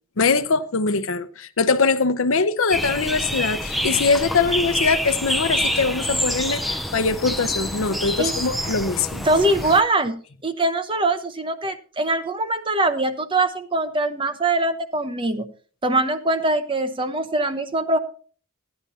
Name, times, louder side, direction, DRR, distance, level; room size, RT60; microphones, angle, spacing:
voice 1, 0.2-9.3, left 4 dB, 65° left, 0.7 m, -22 dB
sound 1, 2.7-9.8, equal, ahead, 0.5 m, -27 dB
voice 2, 9.2-10.2 10.4-15.5 15.8-18.0, right 2 dB, 25° right, 0.8 m, -22 dB
15.5 x 10.5 x 2.8 m
head